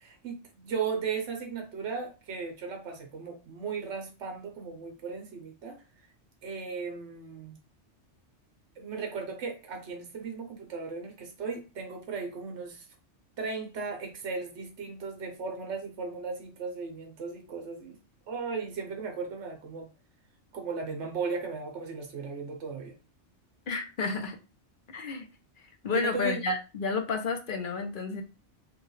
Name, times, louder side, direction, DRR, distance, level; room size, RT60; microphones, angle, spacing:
voice 1, 0.0-5.8 6.4-7.6 8.8-12.8 13.4-18.0 18.3-19.9 20.5-23.0 25.9-26.4, right 5 dB, 70° right, 4 dB, 1.2 m, -36 dB
voice 2, 23.7-24.4 24.9-25.3 25.8-28.2, left 4 dB, 50° left, 4 dB, 0.8 m, -31 dB
5.2 x 2.3 x 3.2 m, 0.31 s
omnidirectional pair, 1.2 m